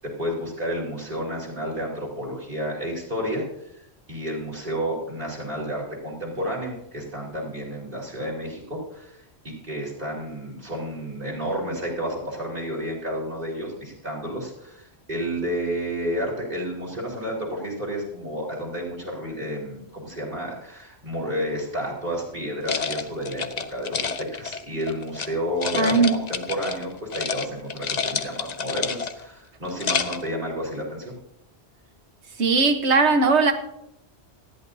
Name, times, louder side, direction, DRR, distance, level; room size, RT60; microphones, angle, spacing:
voice 1, 0.2-3.5 4.1-9.2 9.4-25.9 26.3-31.1, equal, 50° right, 4.4 m, -31 dB
sound 1, 22.6-25.3 25.6-26.8 27.1-27.4 27.7-29.3 29.6-30.3, left 5 dB, 45° left, 0.8 m, -29 dB
voice 2, 25.7-26.2 32.4-33.5, right 4 dB, 90° right, 1.5 m, -19 dB
19.0 x 14.0 x 2.8 m
omnidirectional pair, 1.1 m